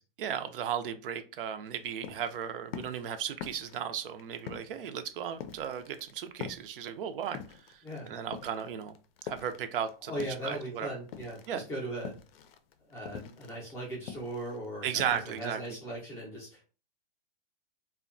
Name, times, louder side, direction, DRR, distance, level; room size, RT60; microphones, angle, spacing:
voice 1, 0.2-7.4 7.7-7.8 8.1-8.9 9.2-10.1 10.4-10.9 11.5-11.7 14.8-15.6, right 8 dB, 65° right, 9 dB, 0.4 m, -35 dB
sound 1, 1.6-10.7 11.0-16.0, left 8 dB, 80° left, 0.5 m, -45 dB
voice 2, 10.1-12.2 12.9-16.7, right 1 dB, 10° left, -5 dB, 0.4 m, -39 dB
2.7 x 2.1 x 2.5 m, 0.35 s
supercardioid pair, 165°, 29 cm